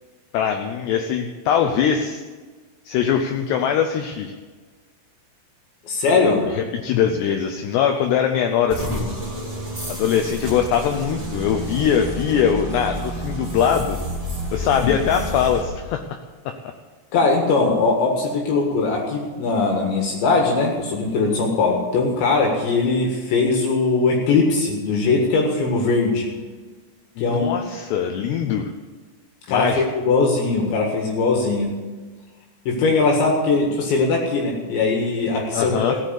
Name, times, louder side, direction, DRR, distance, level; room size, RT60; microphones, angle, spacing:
voice 1, 0.3-2.2 2.9-4.3 6.5-9.1 9.9-14.0 14.5-16.0 16.5-16.6 27.2-28.7 29.5-29.8 35.5-36.0, left 8 dB, 80° left, 5 dB, 2.4 m, -22 dB
voice 2, 5.9-6.4 14.8-14.9 17.1-26.3 27.2-27.5 29.5-31.7 32.7-36.0, left 3 dB, 65° left, 0 dB, 3.8 m, -20 dB
sound 1, 8.7-15.6, right 1 dB, 65° right, 0.3 m, -30 dB
15.5 x 9.1 x 8.2 m, 1.4 s
omnidirectional pair, 5.9 m